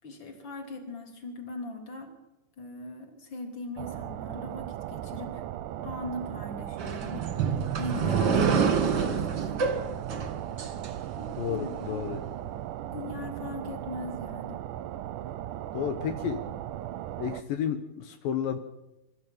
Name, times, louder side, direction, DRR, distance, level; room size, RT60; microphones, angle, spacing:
voice 1, 0.0-2.1 2.6-5.4 5.8-7.3 7.8-9.7 11.2-12.1 12.9-14.6, left 2 dB, 35° left, 4 dB, 3.7 m, -40 dB
sound 1, 3.8-17.4, right 12 dB, 75° right, 2.1 m, -37 dB
sound 2, 6.8-11.5, right 6 dB, 40° right, 1.9 m, -27 dB
voice 2, 11.4-12.2 15.7-16.5 17.2-18.6, left 8 dB, 75° left, 7 dB, 2.7 m, -31 dB
23.5 x 13.5 x 9.0 m, 0.99 s
omnidirectional pair, 4.1 m